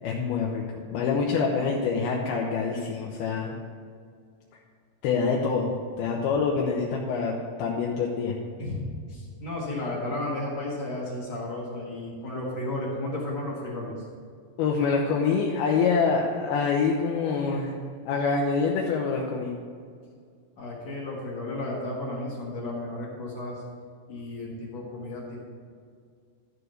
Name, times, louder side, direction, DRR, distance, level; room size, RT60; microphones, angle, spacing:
voice 1, 0.0-3.5 5.0-8.3 14.6-17.7 18.1-19.5, left 5 dB, 80° left, -1 dB, 2.7 m, -26 dB
voice 2, 8.6-14.1 20.6-23.6 24.1-25.4, left 1 dB, 50° left, -4 dB, 2.3 m, -33 dB
12.5 x 4.9 x 6.5 m, 2.1 s
omnidirectional pair, 4.6 m